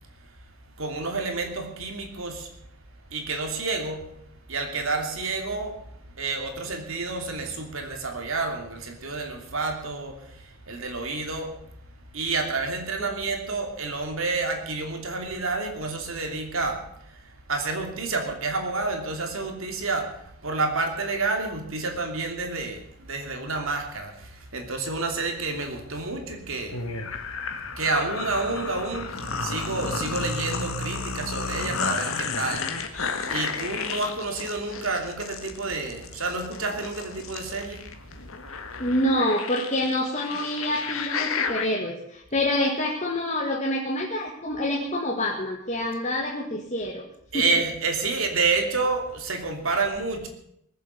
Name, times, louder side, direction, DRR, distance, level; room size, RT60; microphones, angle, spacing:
voice 1, 0.8-2.5 3.1-4.1 4.5-5.8 6.2-11.5 12.1-26.8 27.2-27.3 27.7-33.0 33.2-37.8 47.3-50.3, right 3 dB, 65° right, 4 dB, 2.8 m, -29 dB
sound 1, 26.7-41.7, left 4 dB, 70° left, 1.7 m, -32 dB
voice 2, 38.8-47.0 47.3-47.5, left 1 dB, 30° left, -2 dB, 1.8 m, -27 dB
20.0 x 7.7 x 8.3 m, 0.74 s
head